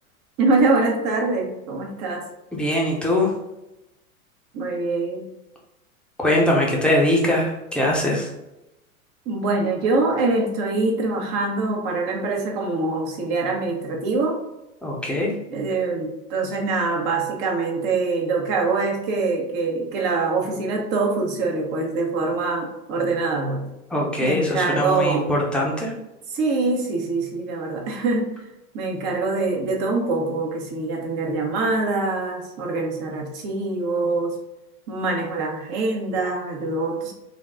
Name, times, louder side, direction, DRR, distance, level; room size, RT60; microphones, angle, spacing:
voice 1, 0.4-2.3 4.5-5.3 9.3-14.4 15.5-23.7 24.2-25.3 26.3-28.3 28.7-34.4 34.9-37.1, right 3 dB, 40° right, 1 dB, 1.0 m, -24 dB
voice 2, 2.5-3.3 6.2-8.3 14.8-15.3 23.9-25.9, left 1 dB, ahead, -2 dB, 0.7 m, -21 dB
4.0 x 2.3 x 3.7 m, 0.92 s
hypercardioid pair, 105°, 44 cm